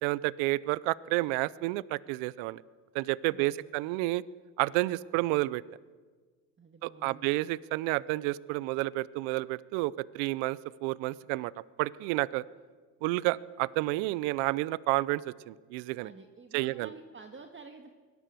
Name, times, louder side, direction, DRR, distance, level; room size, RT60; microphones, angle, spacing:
voice 1, 0.0-2.6 2.9-4.2 4.6-5.6 6.8-11.5 11.8-12.4 13.0-16.1 16.5-16.9, right 19 dB, 80° right, 21 dB, 0.7 m, -30 dB
voice 2, 3.3-3.7 6.6-7.3 16.0-17.9, right 4 dB, 25° right, 6 dB, 1.7 m, -50 dB
23.0 x 18.0 x 7.7 m, 1.5 s
supercardioid pair, 75°, 46 cm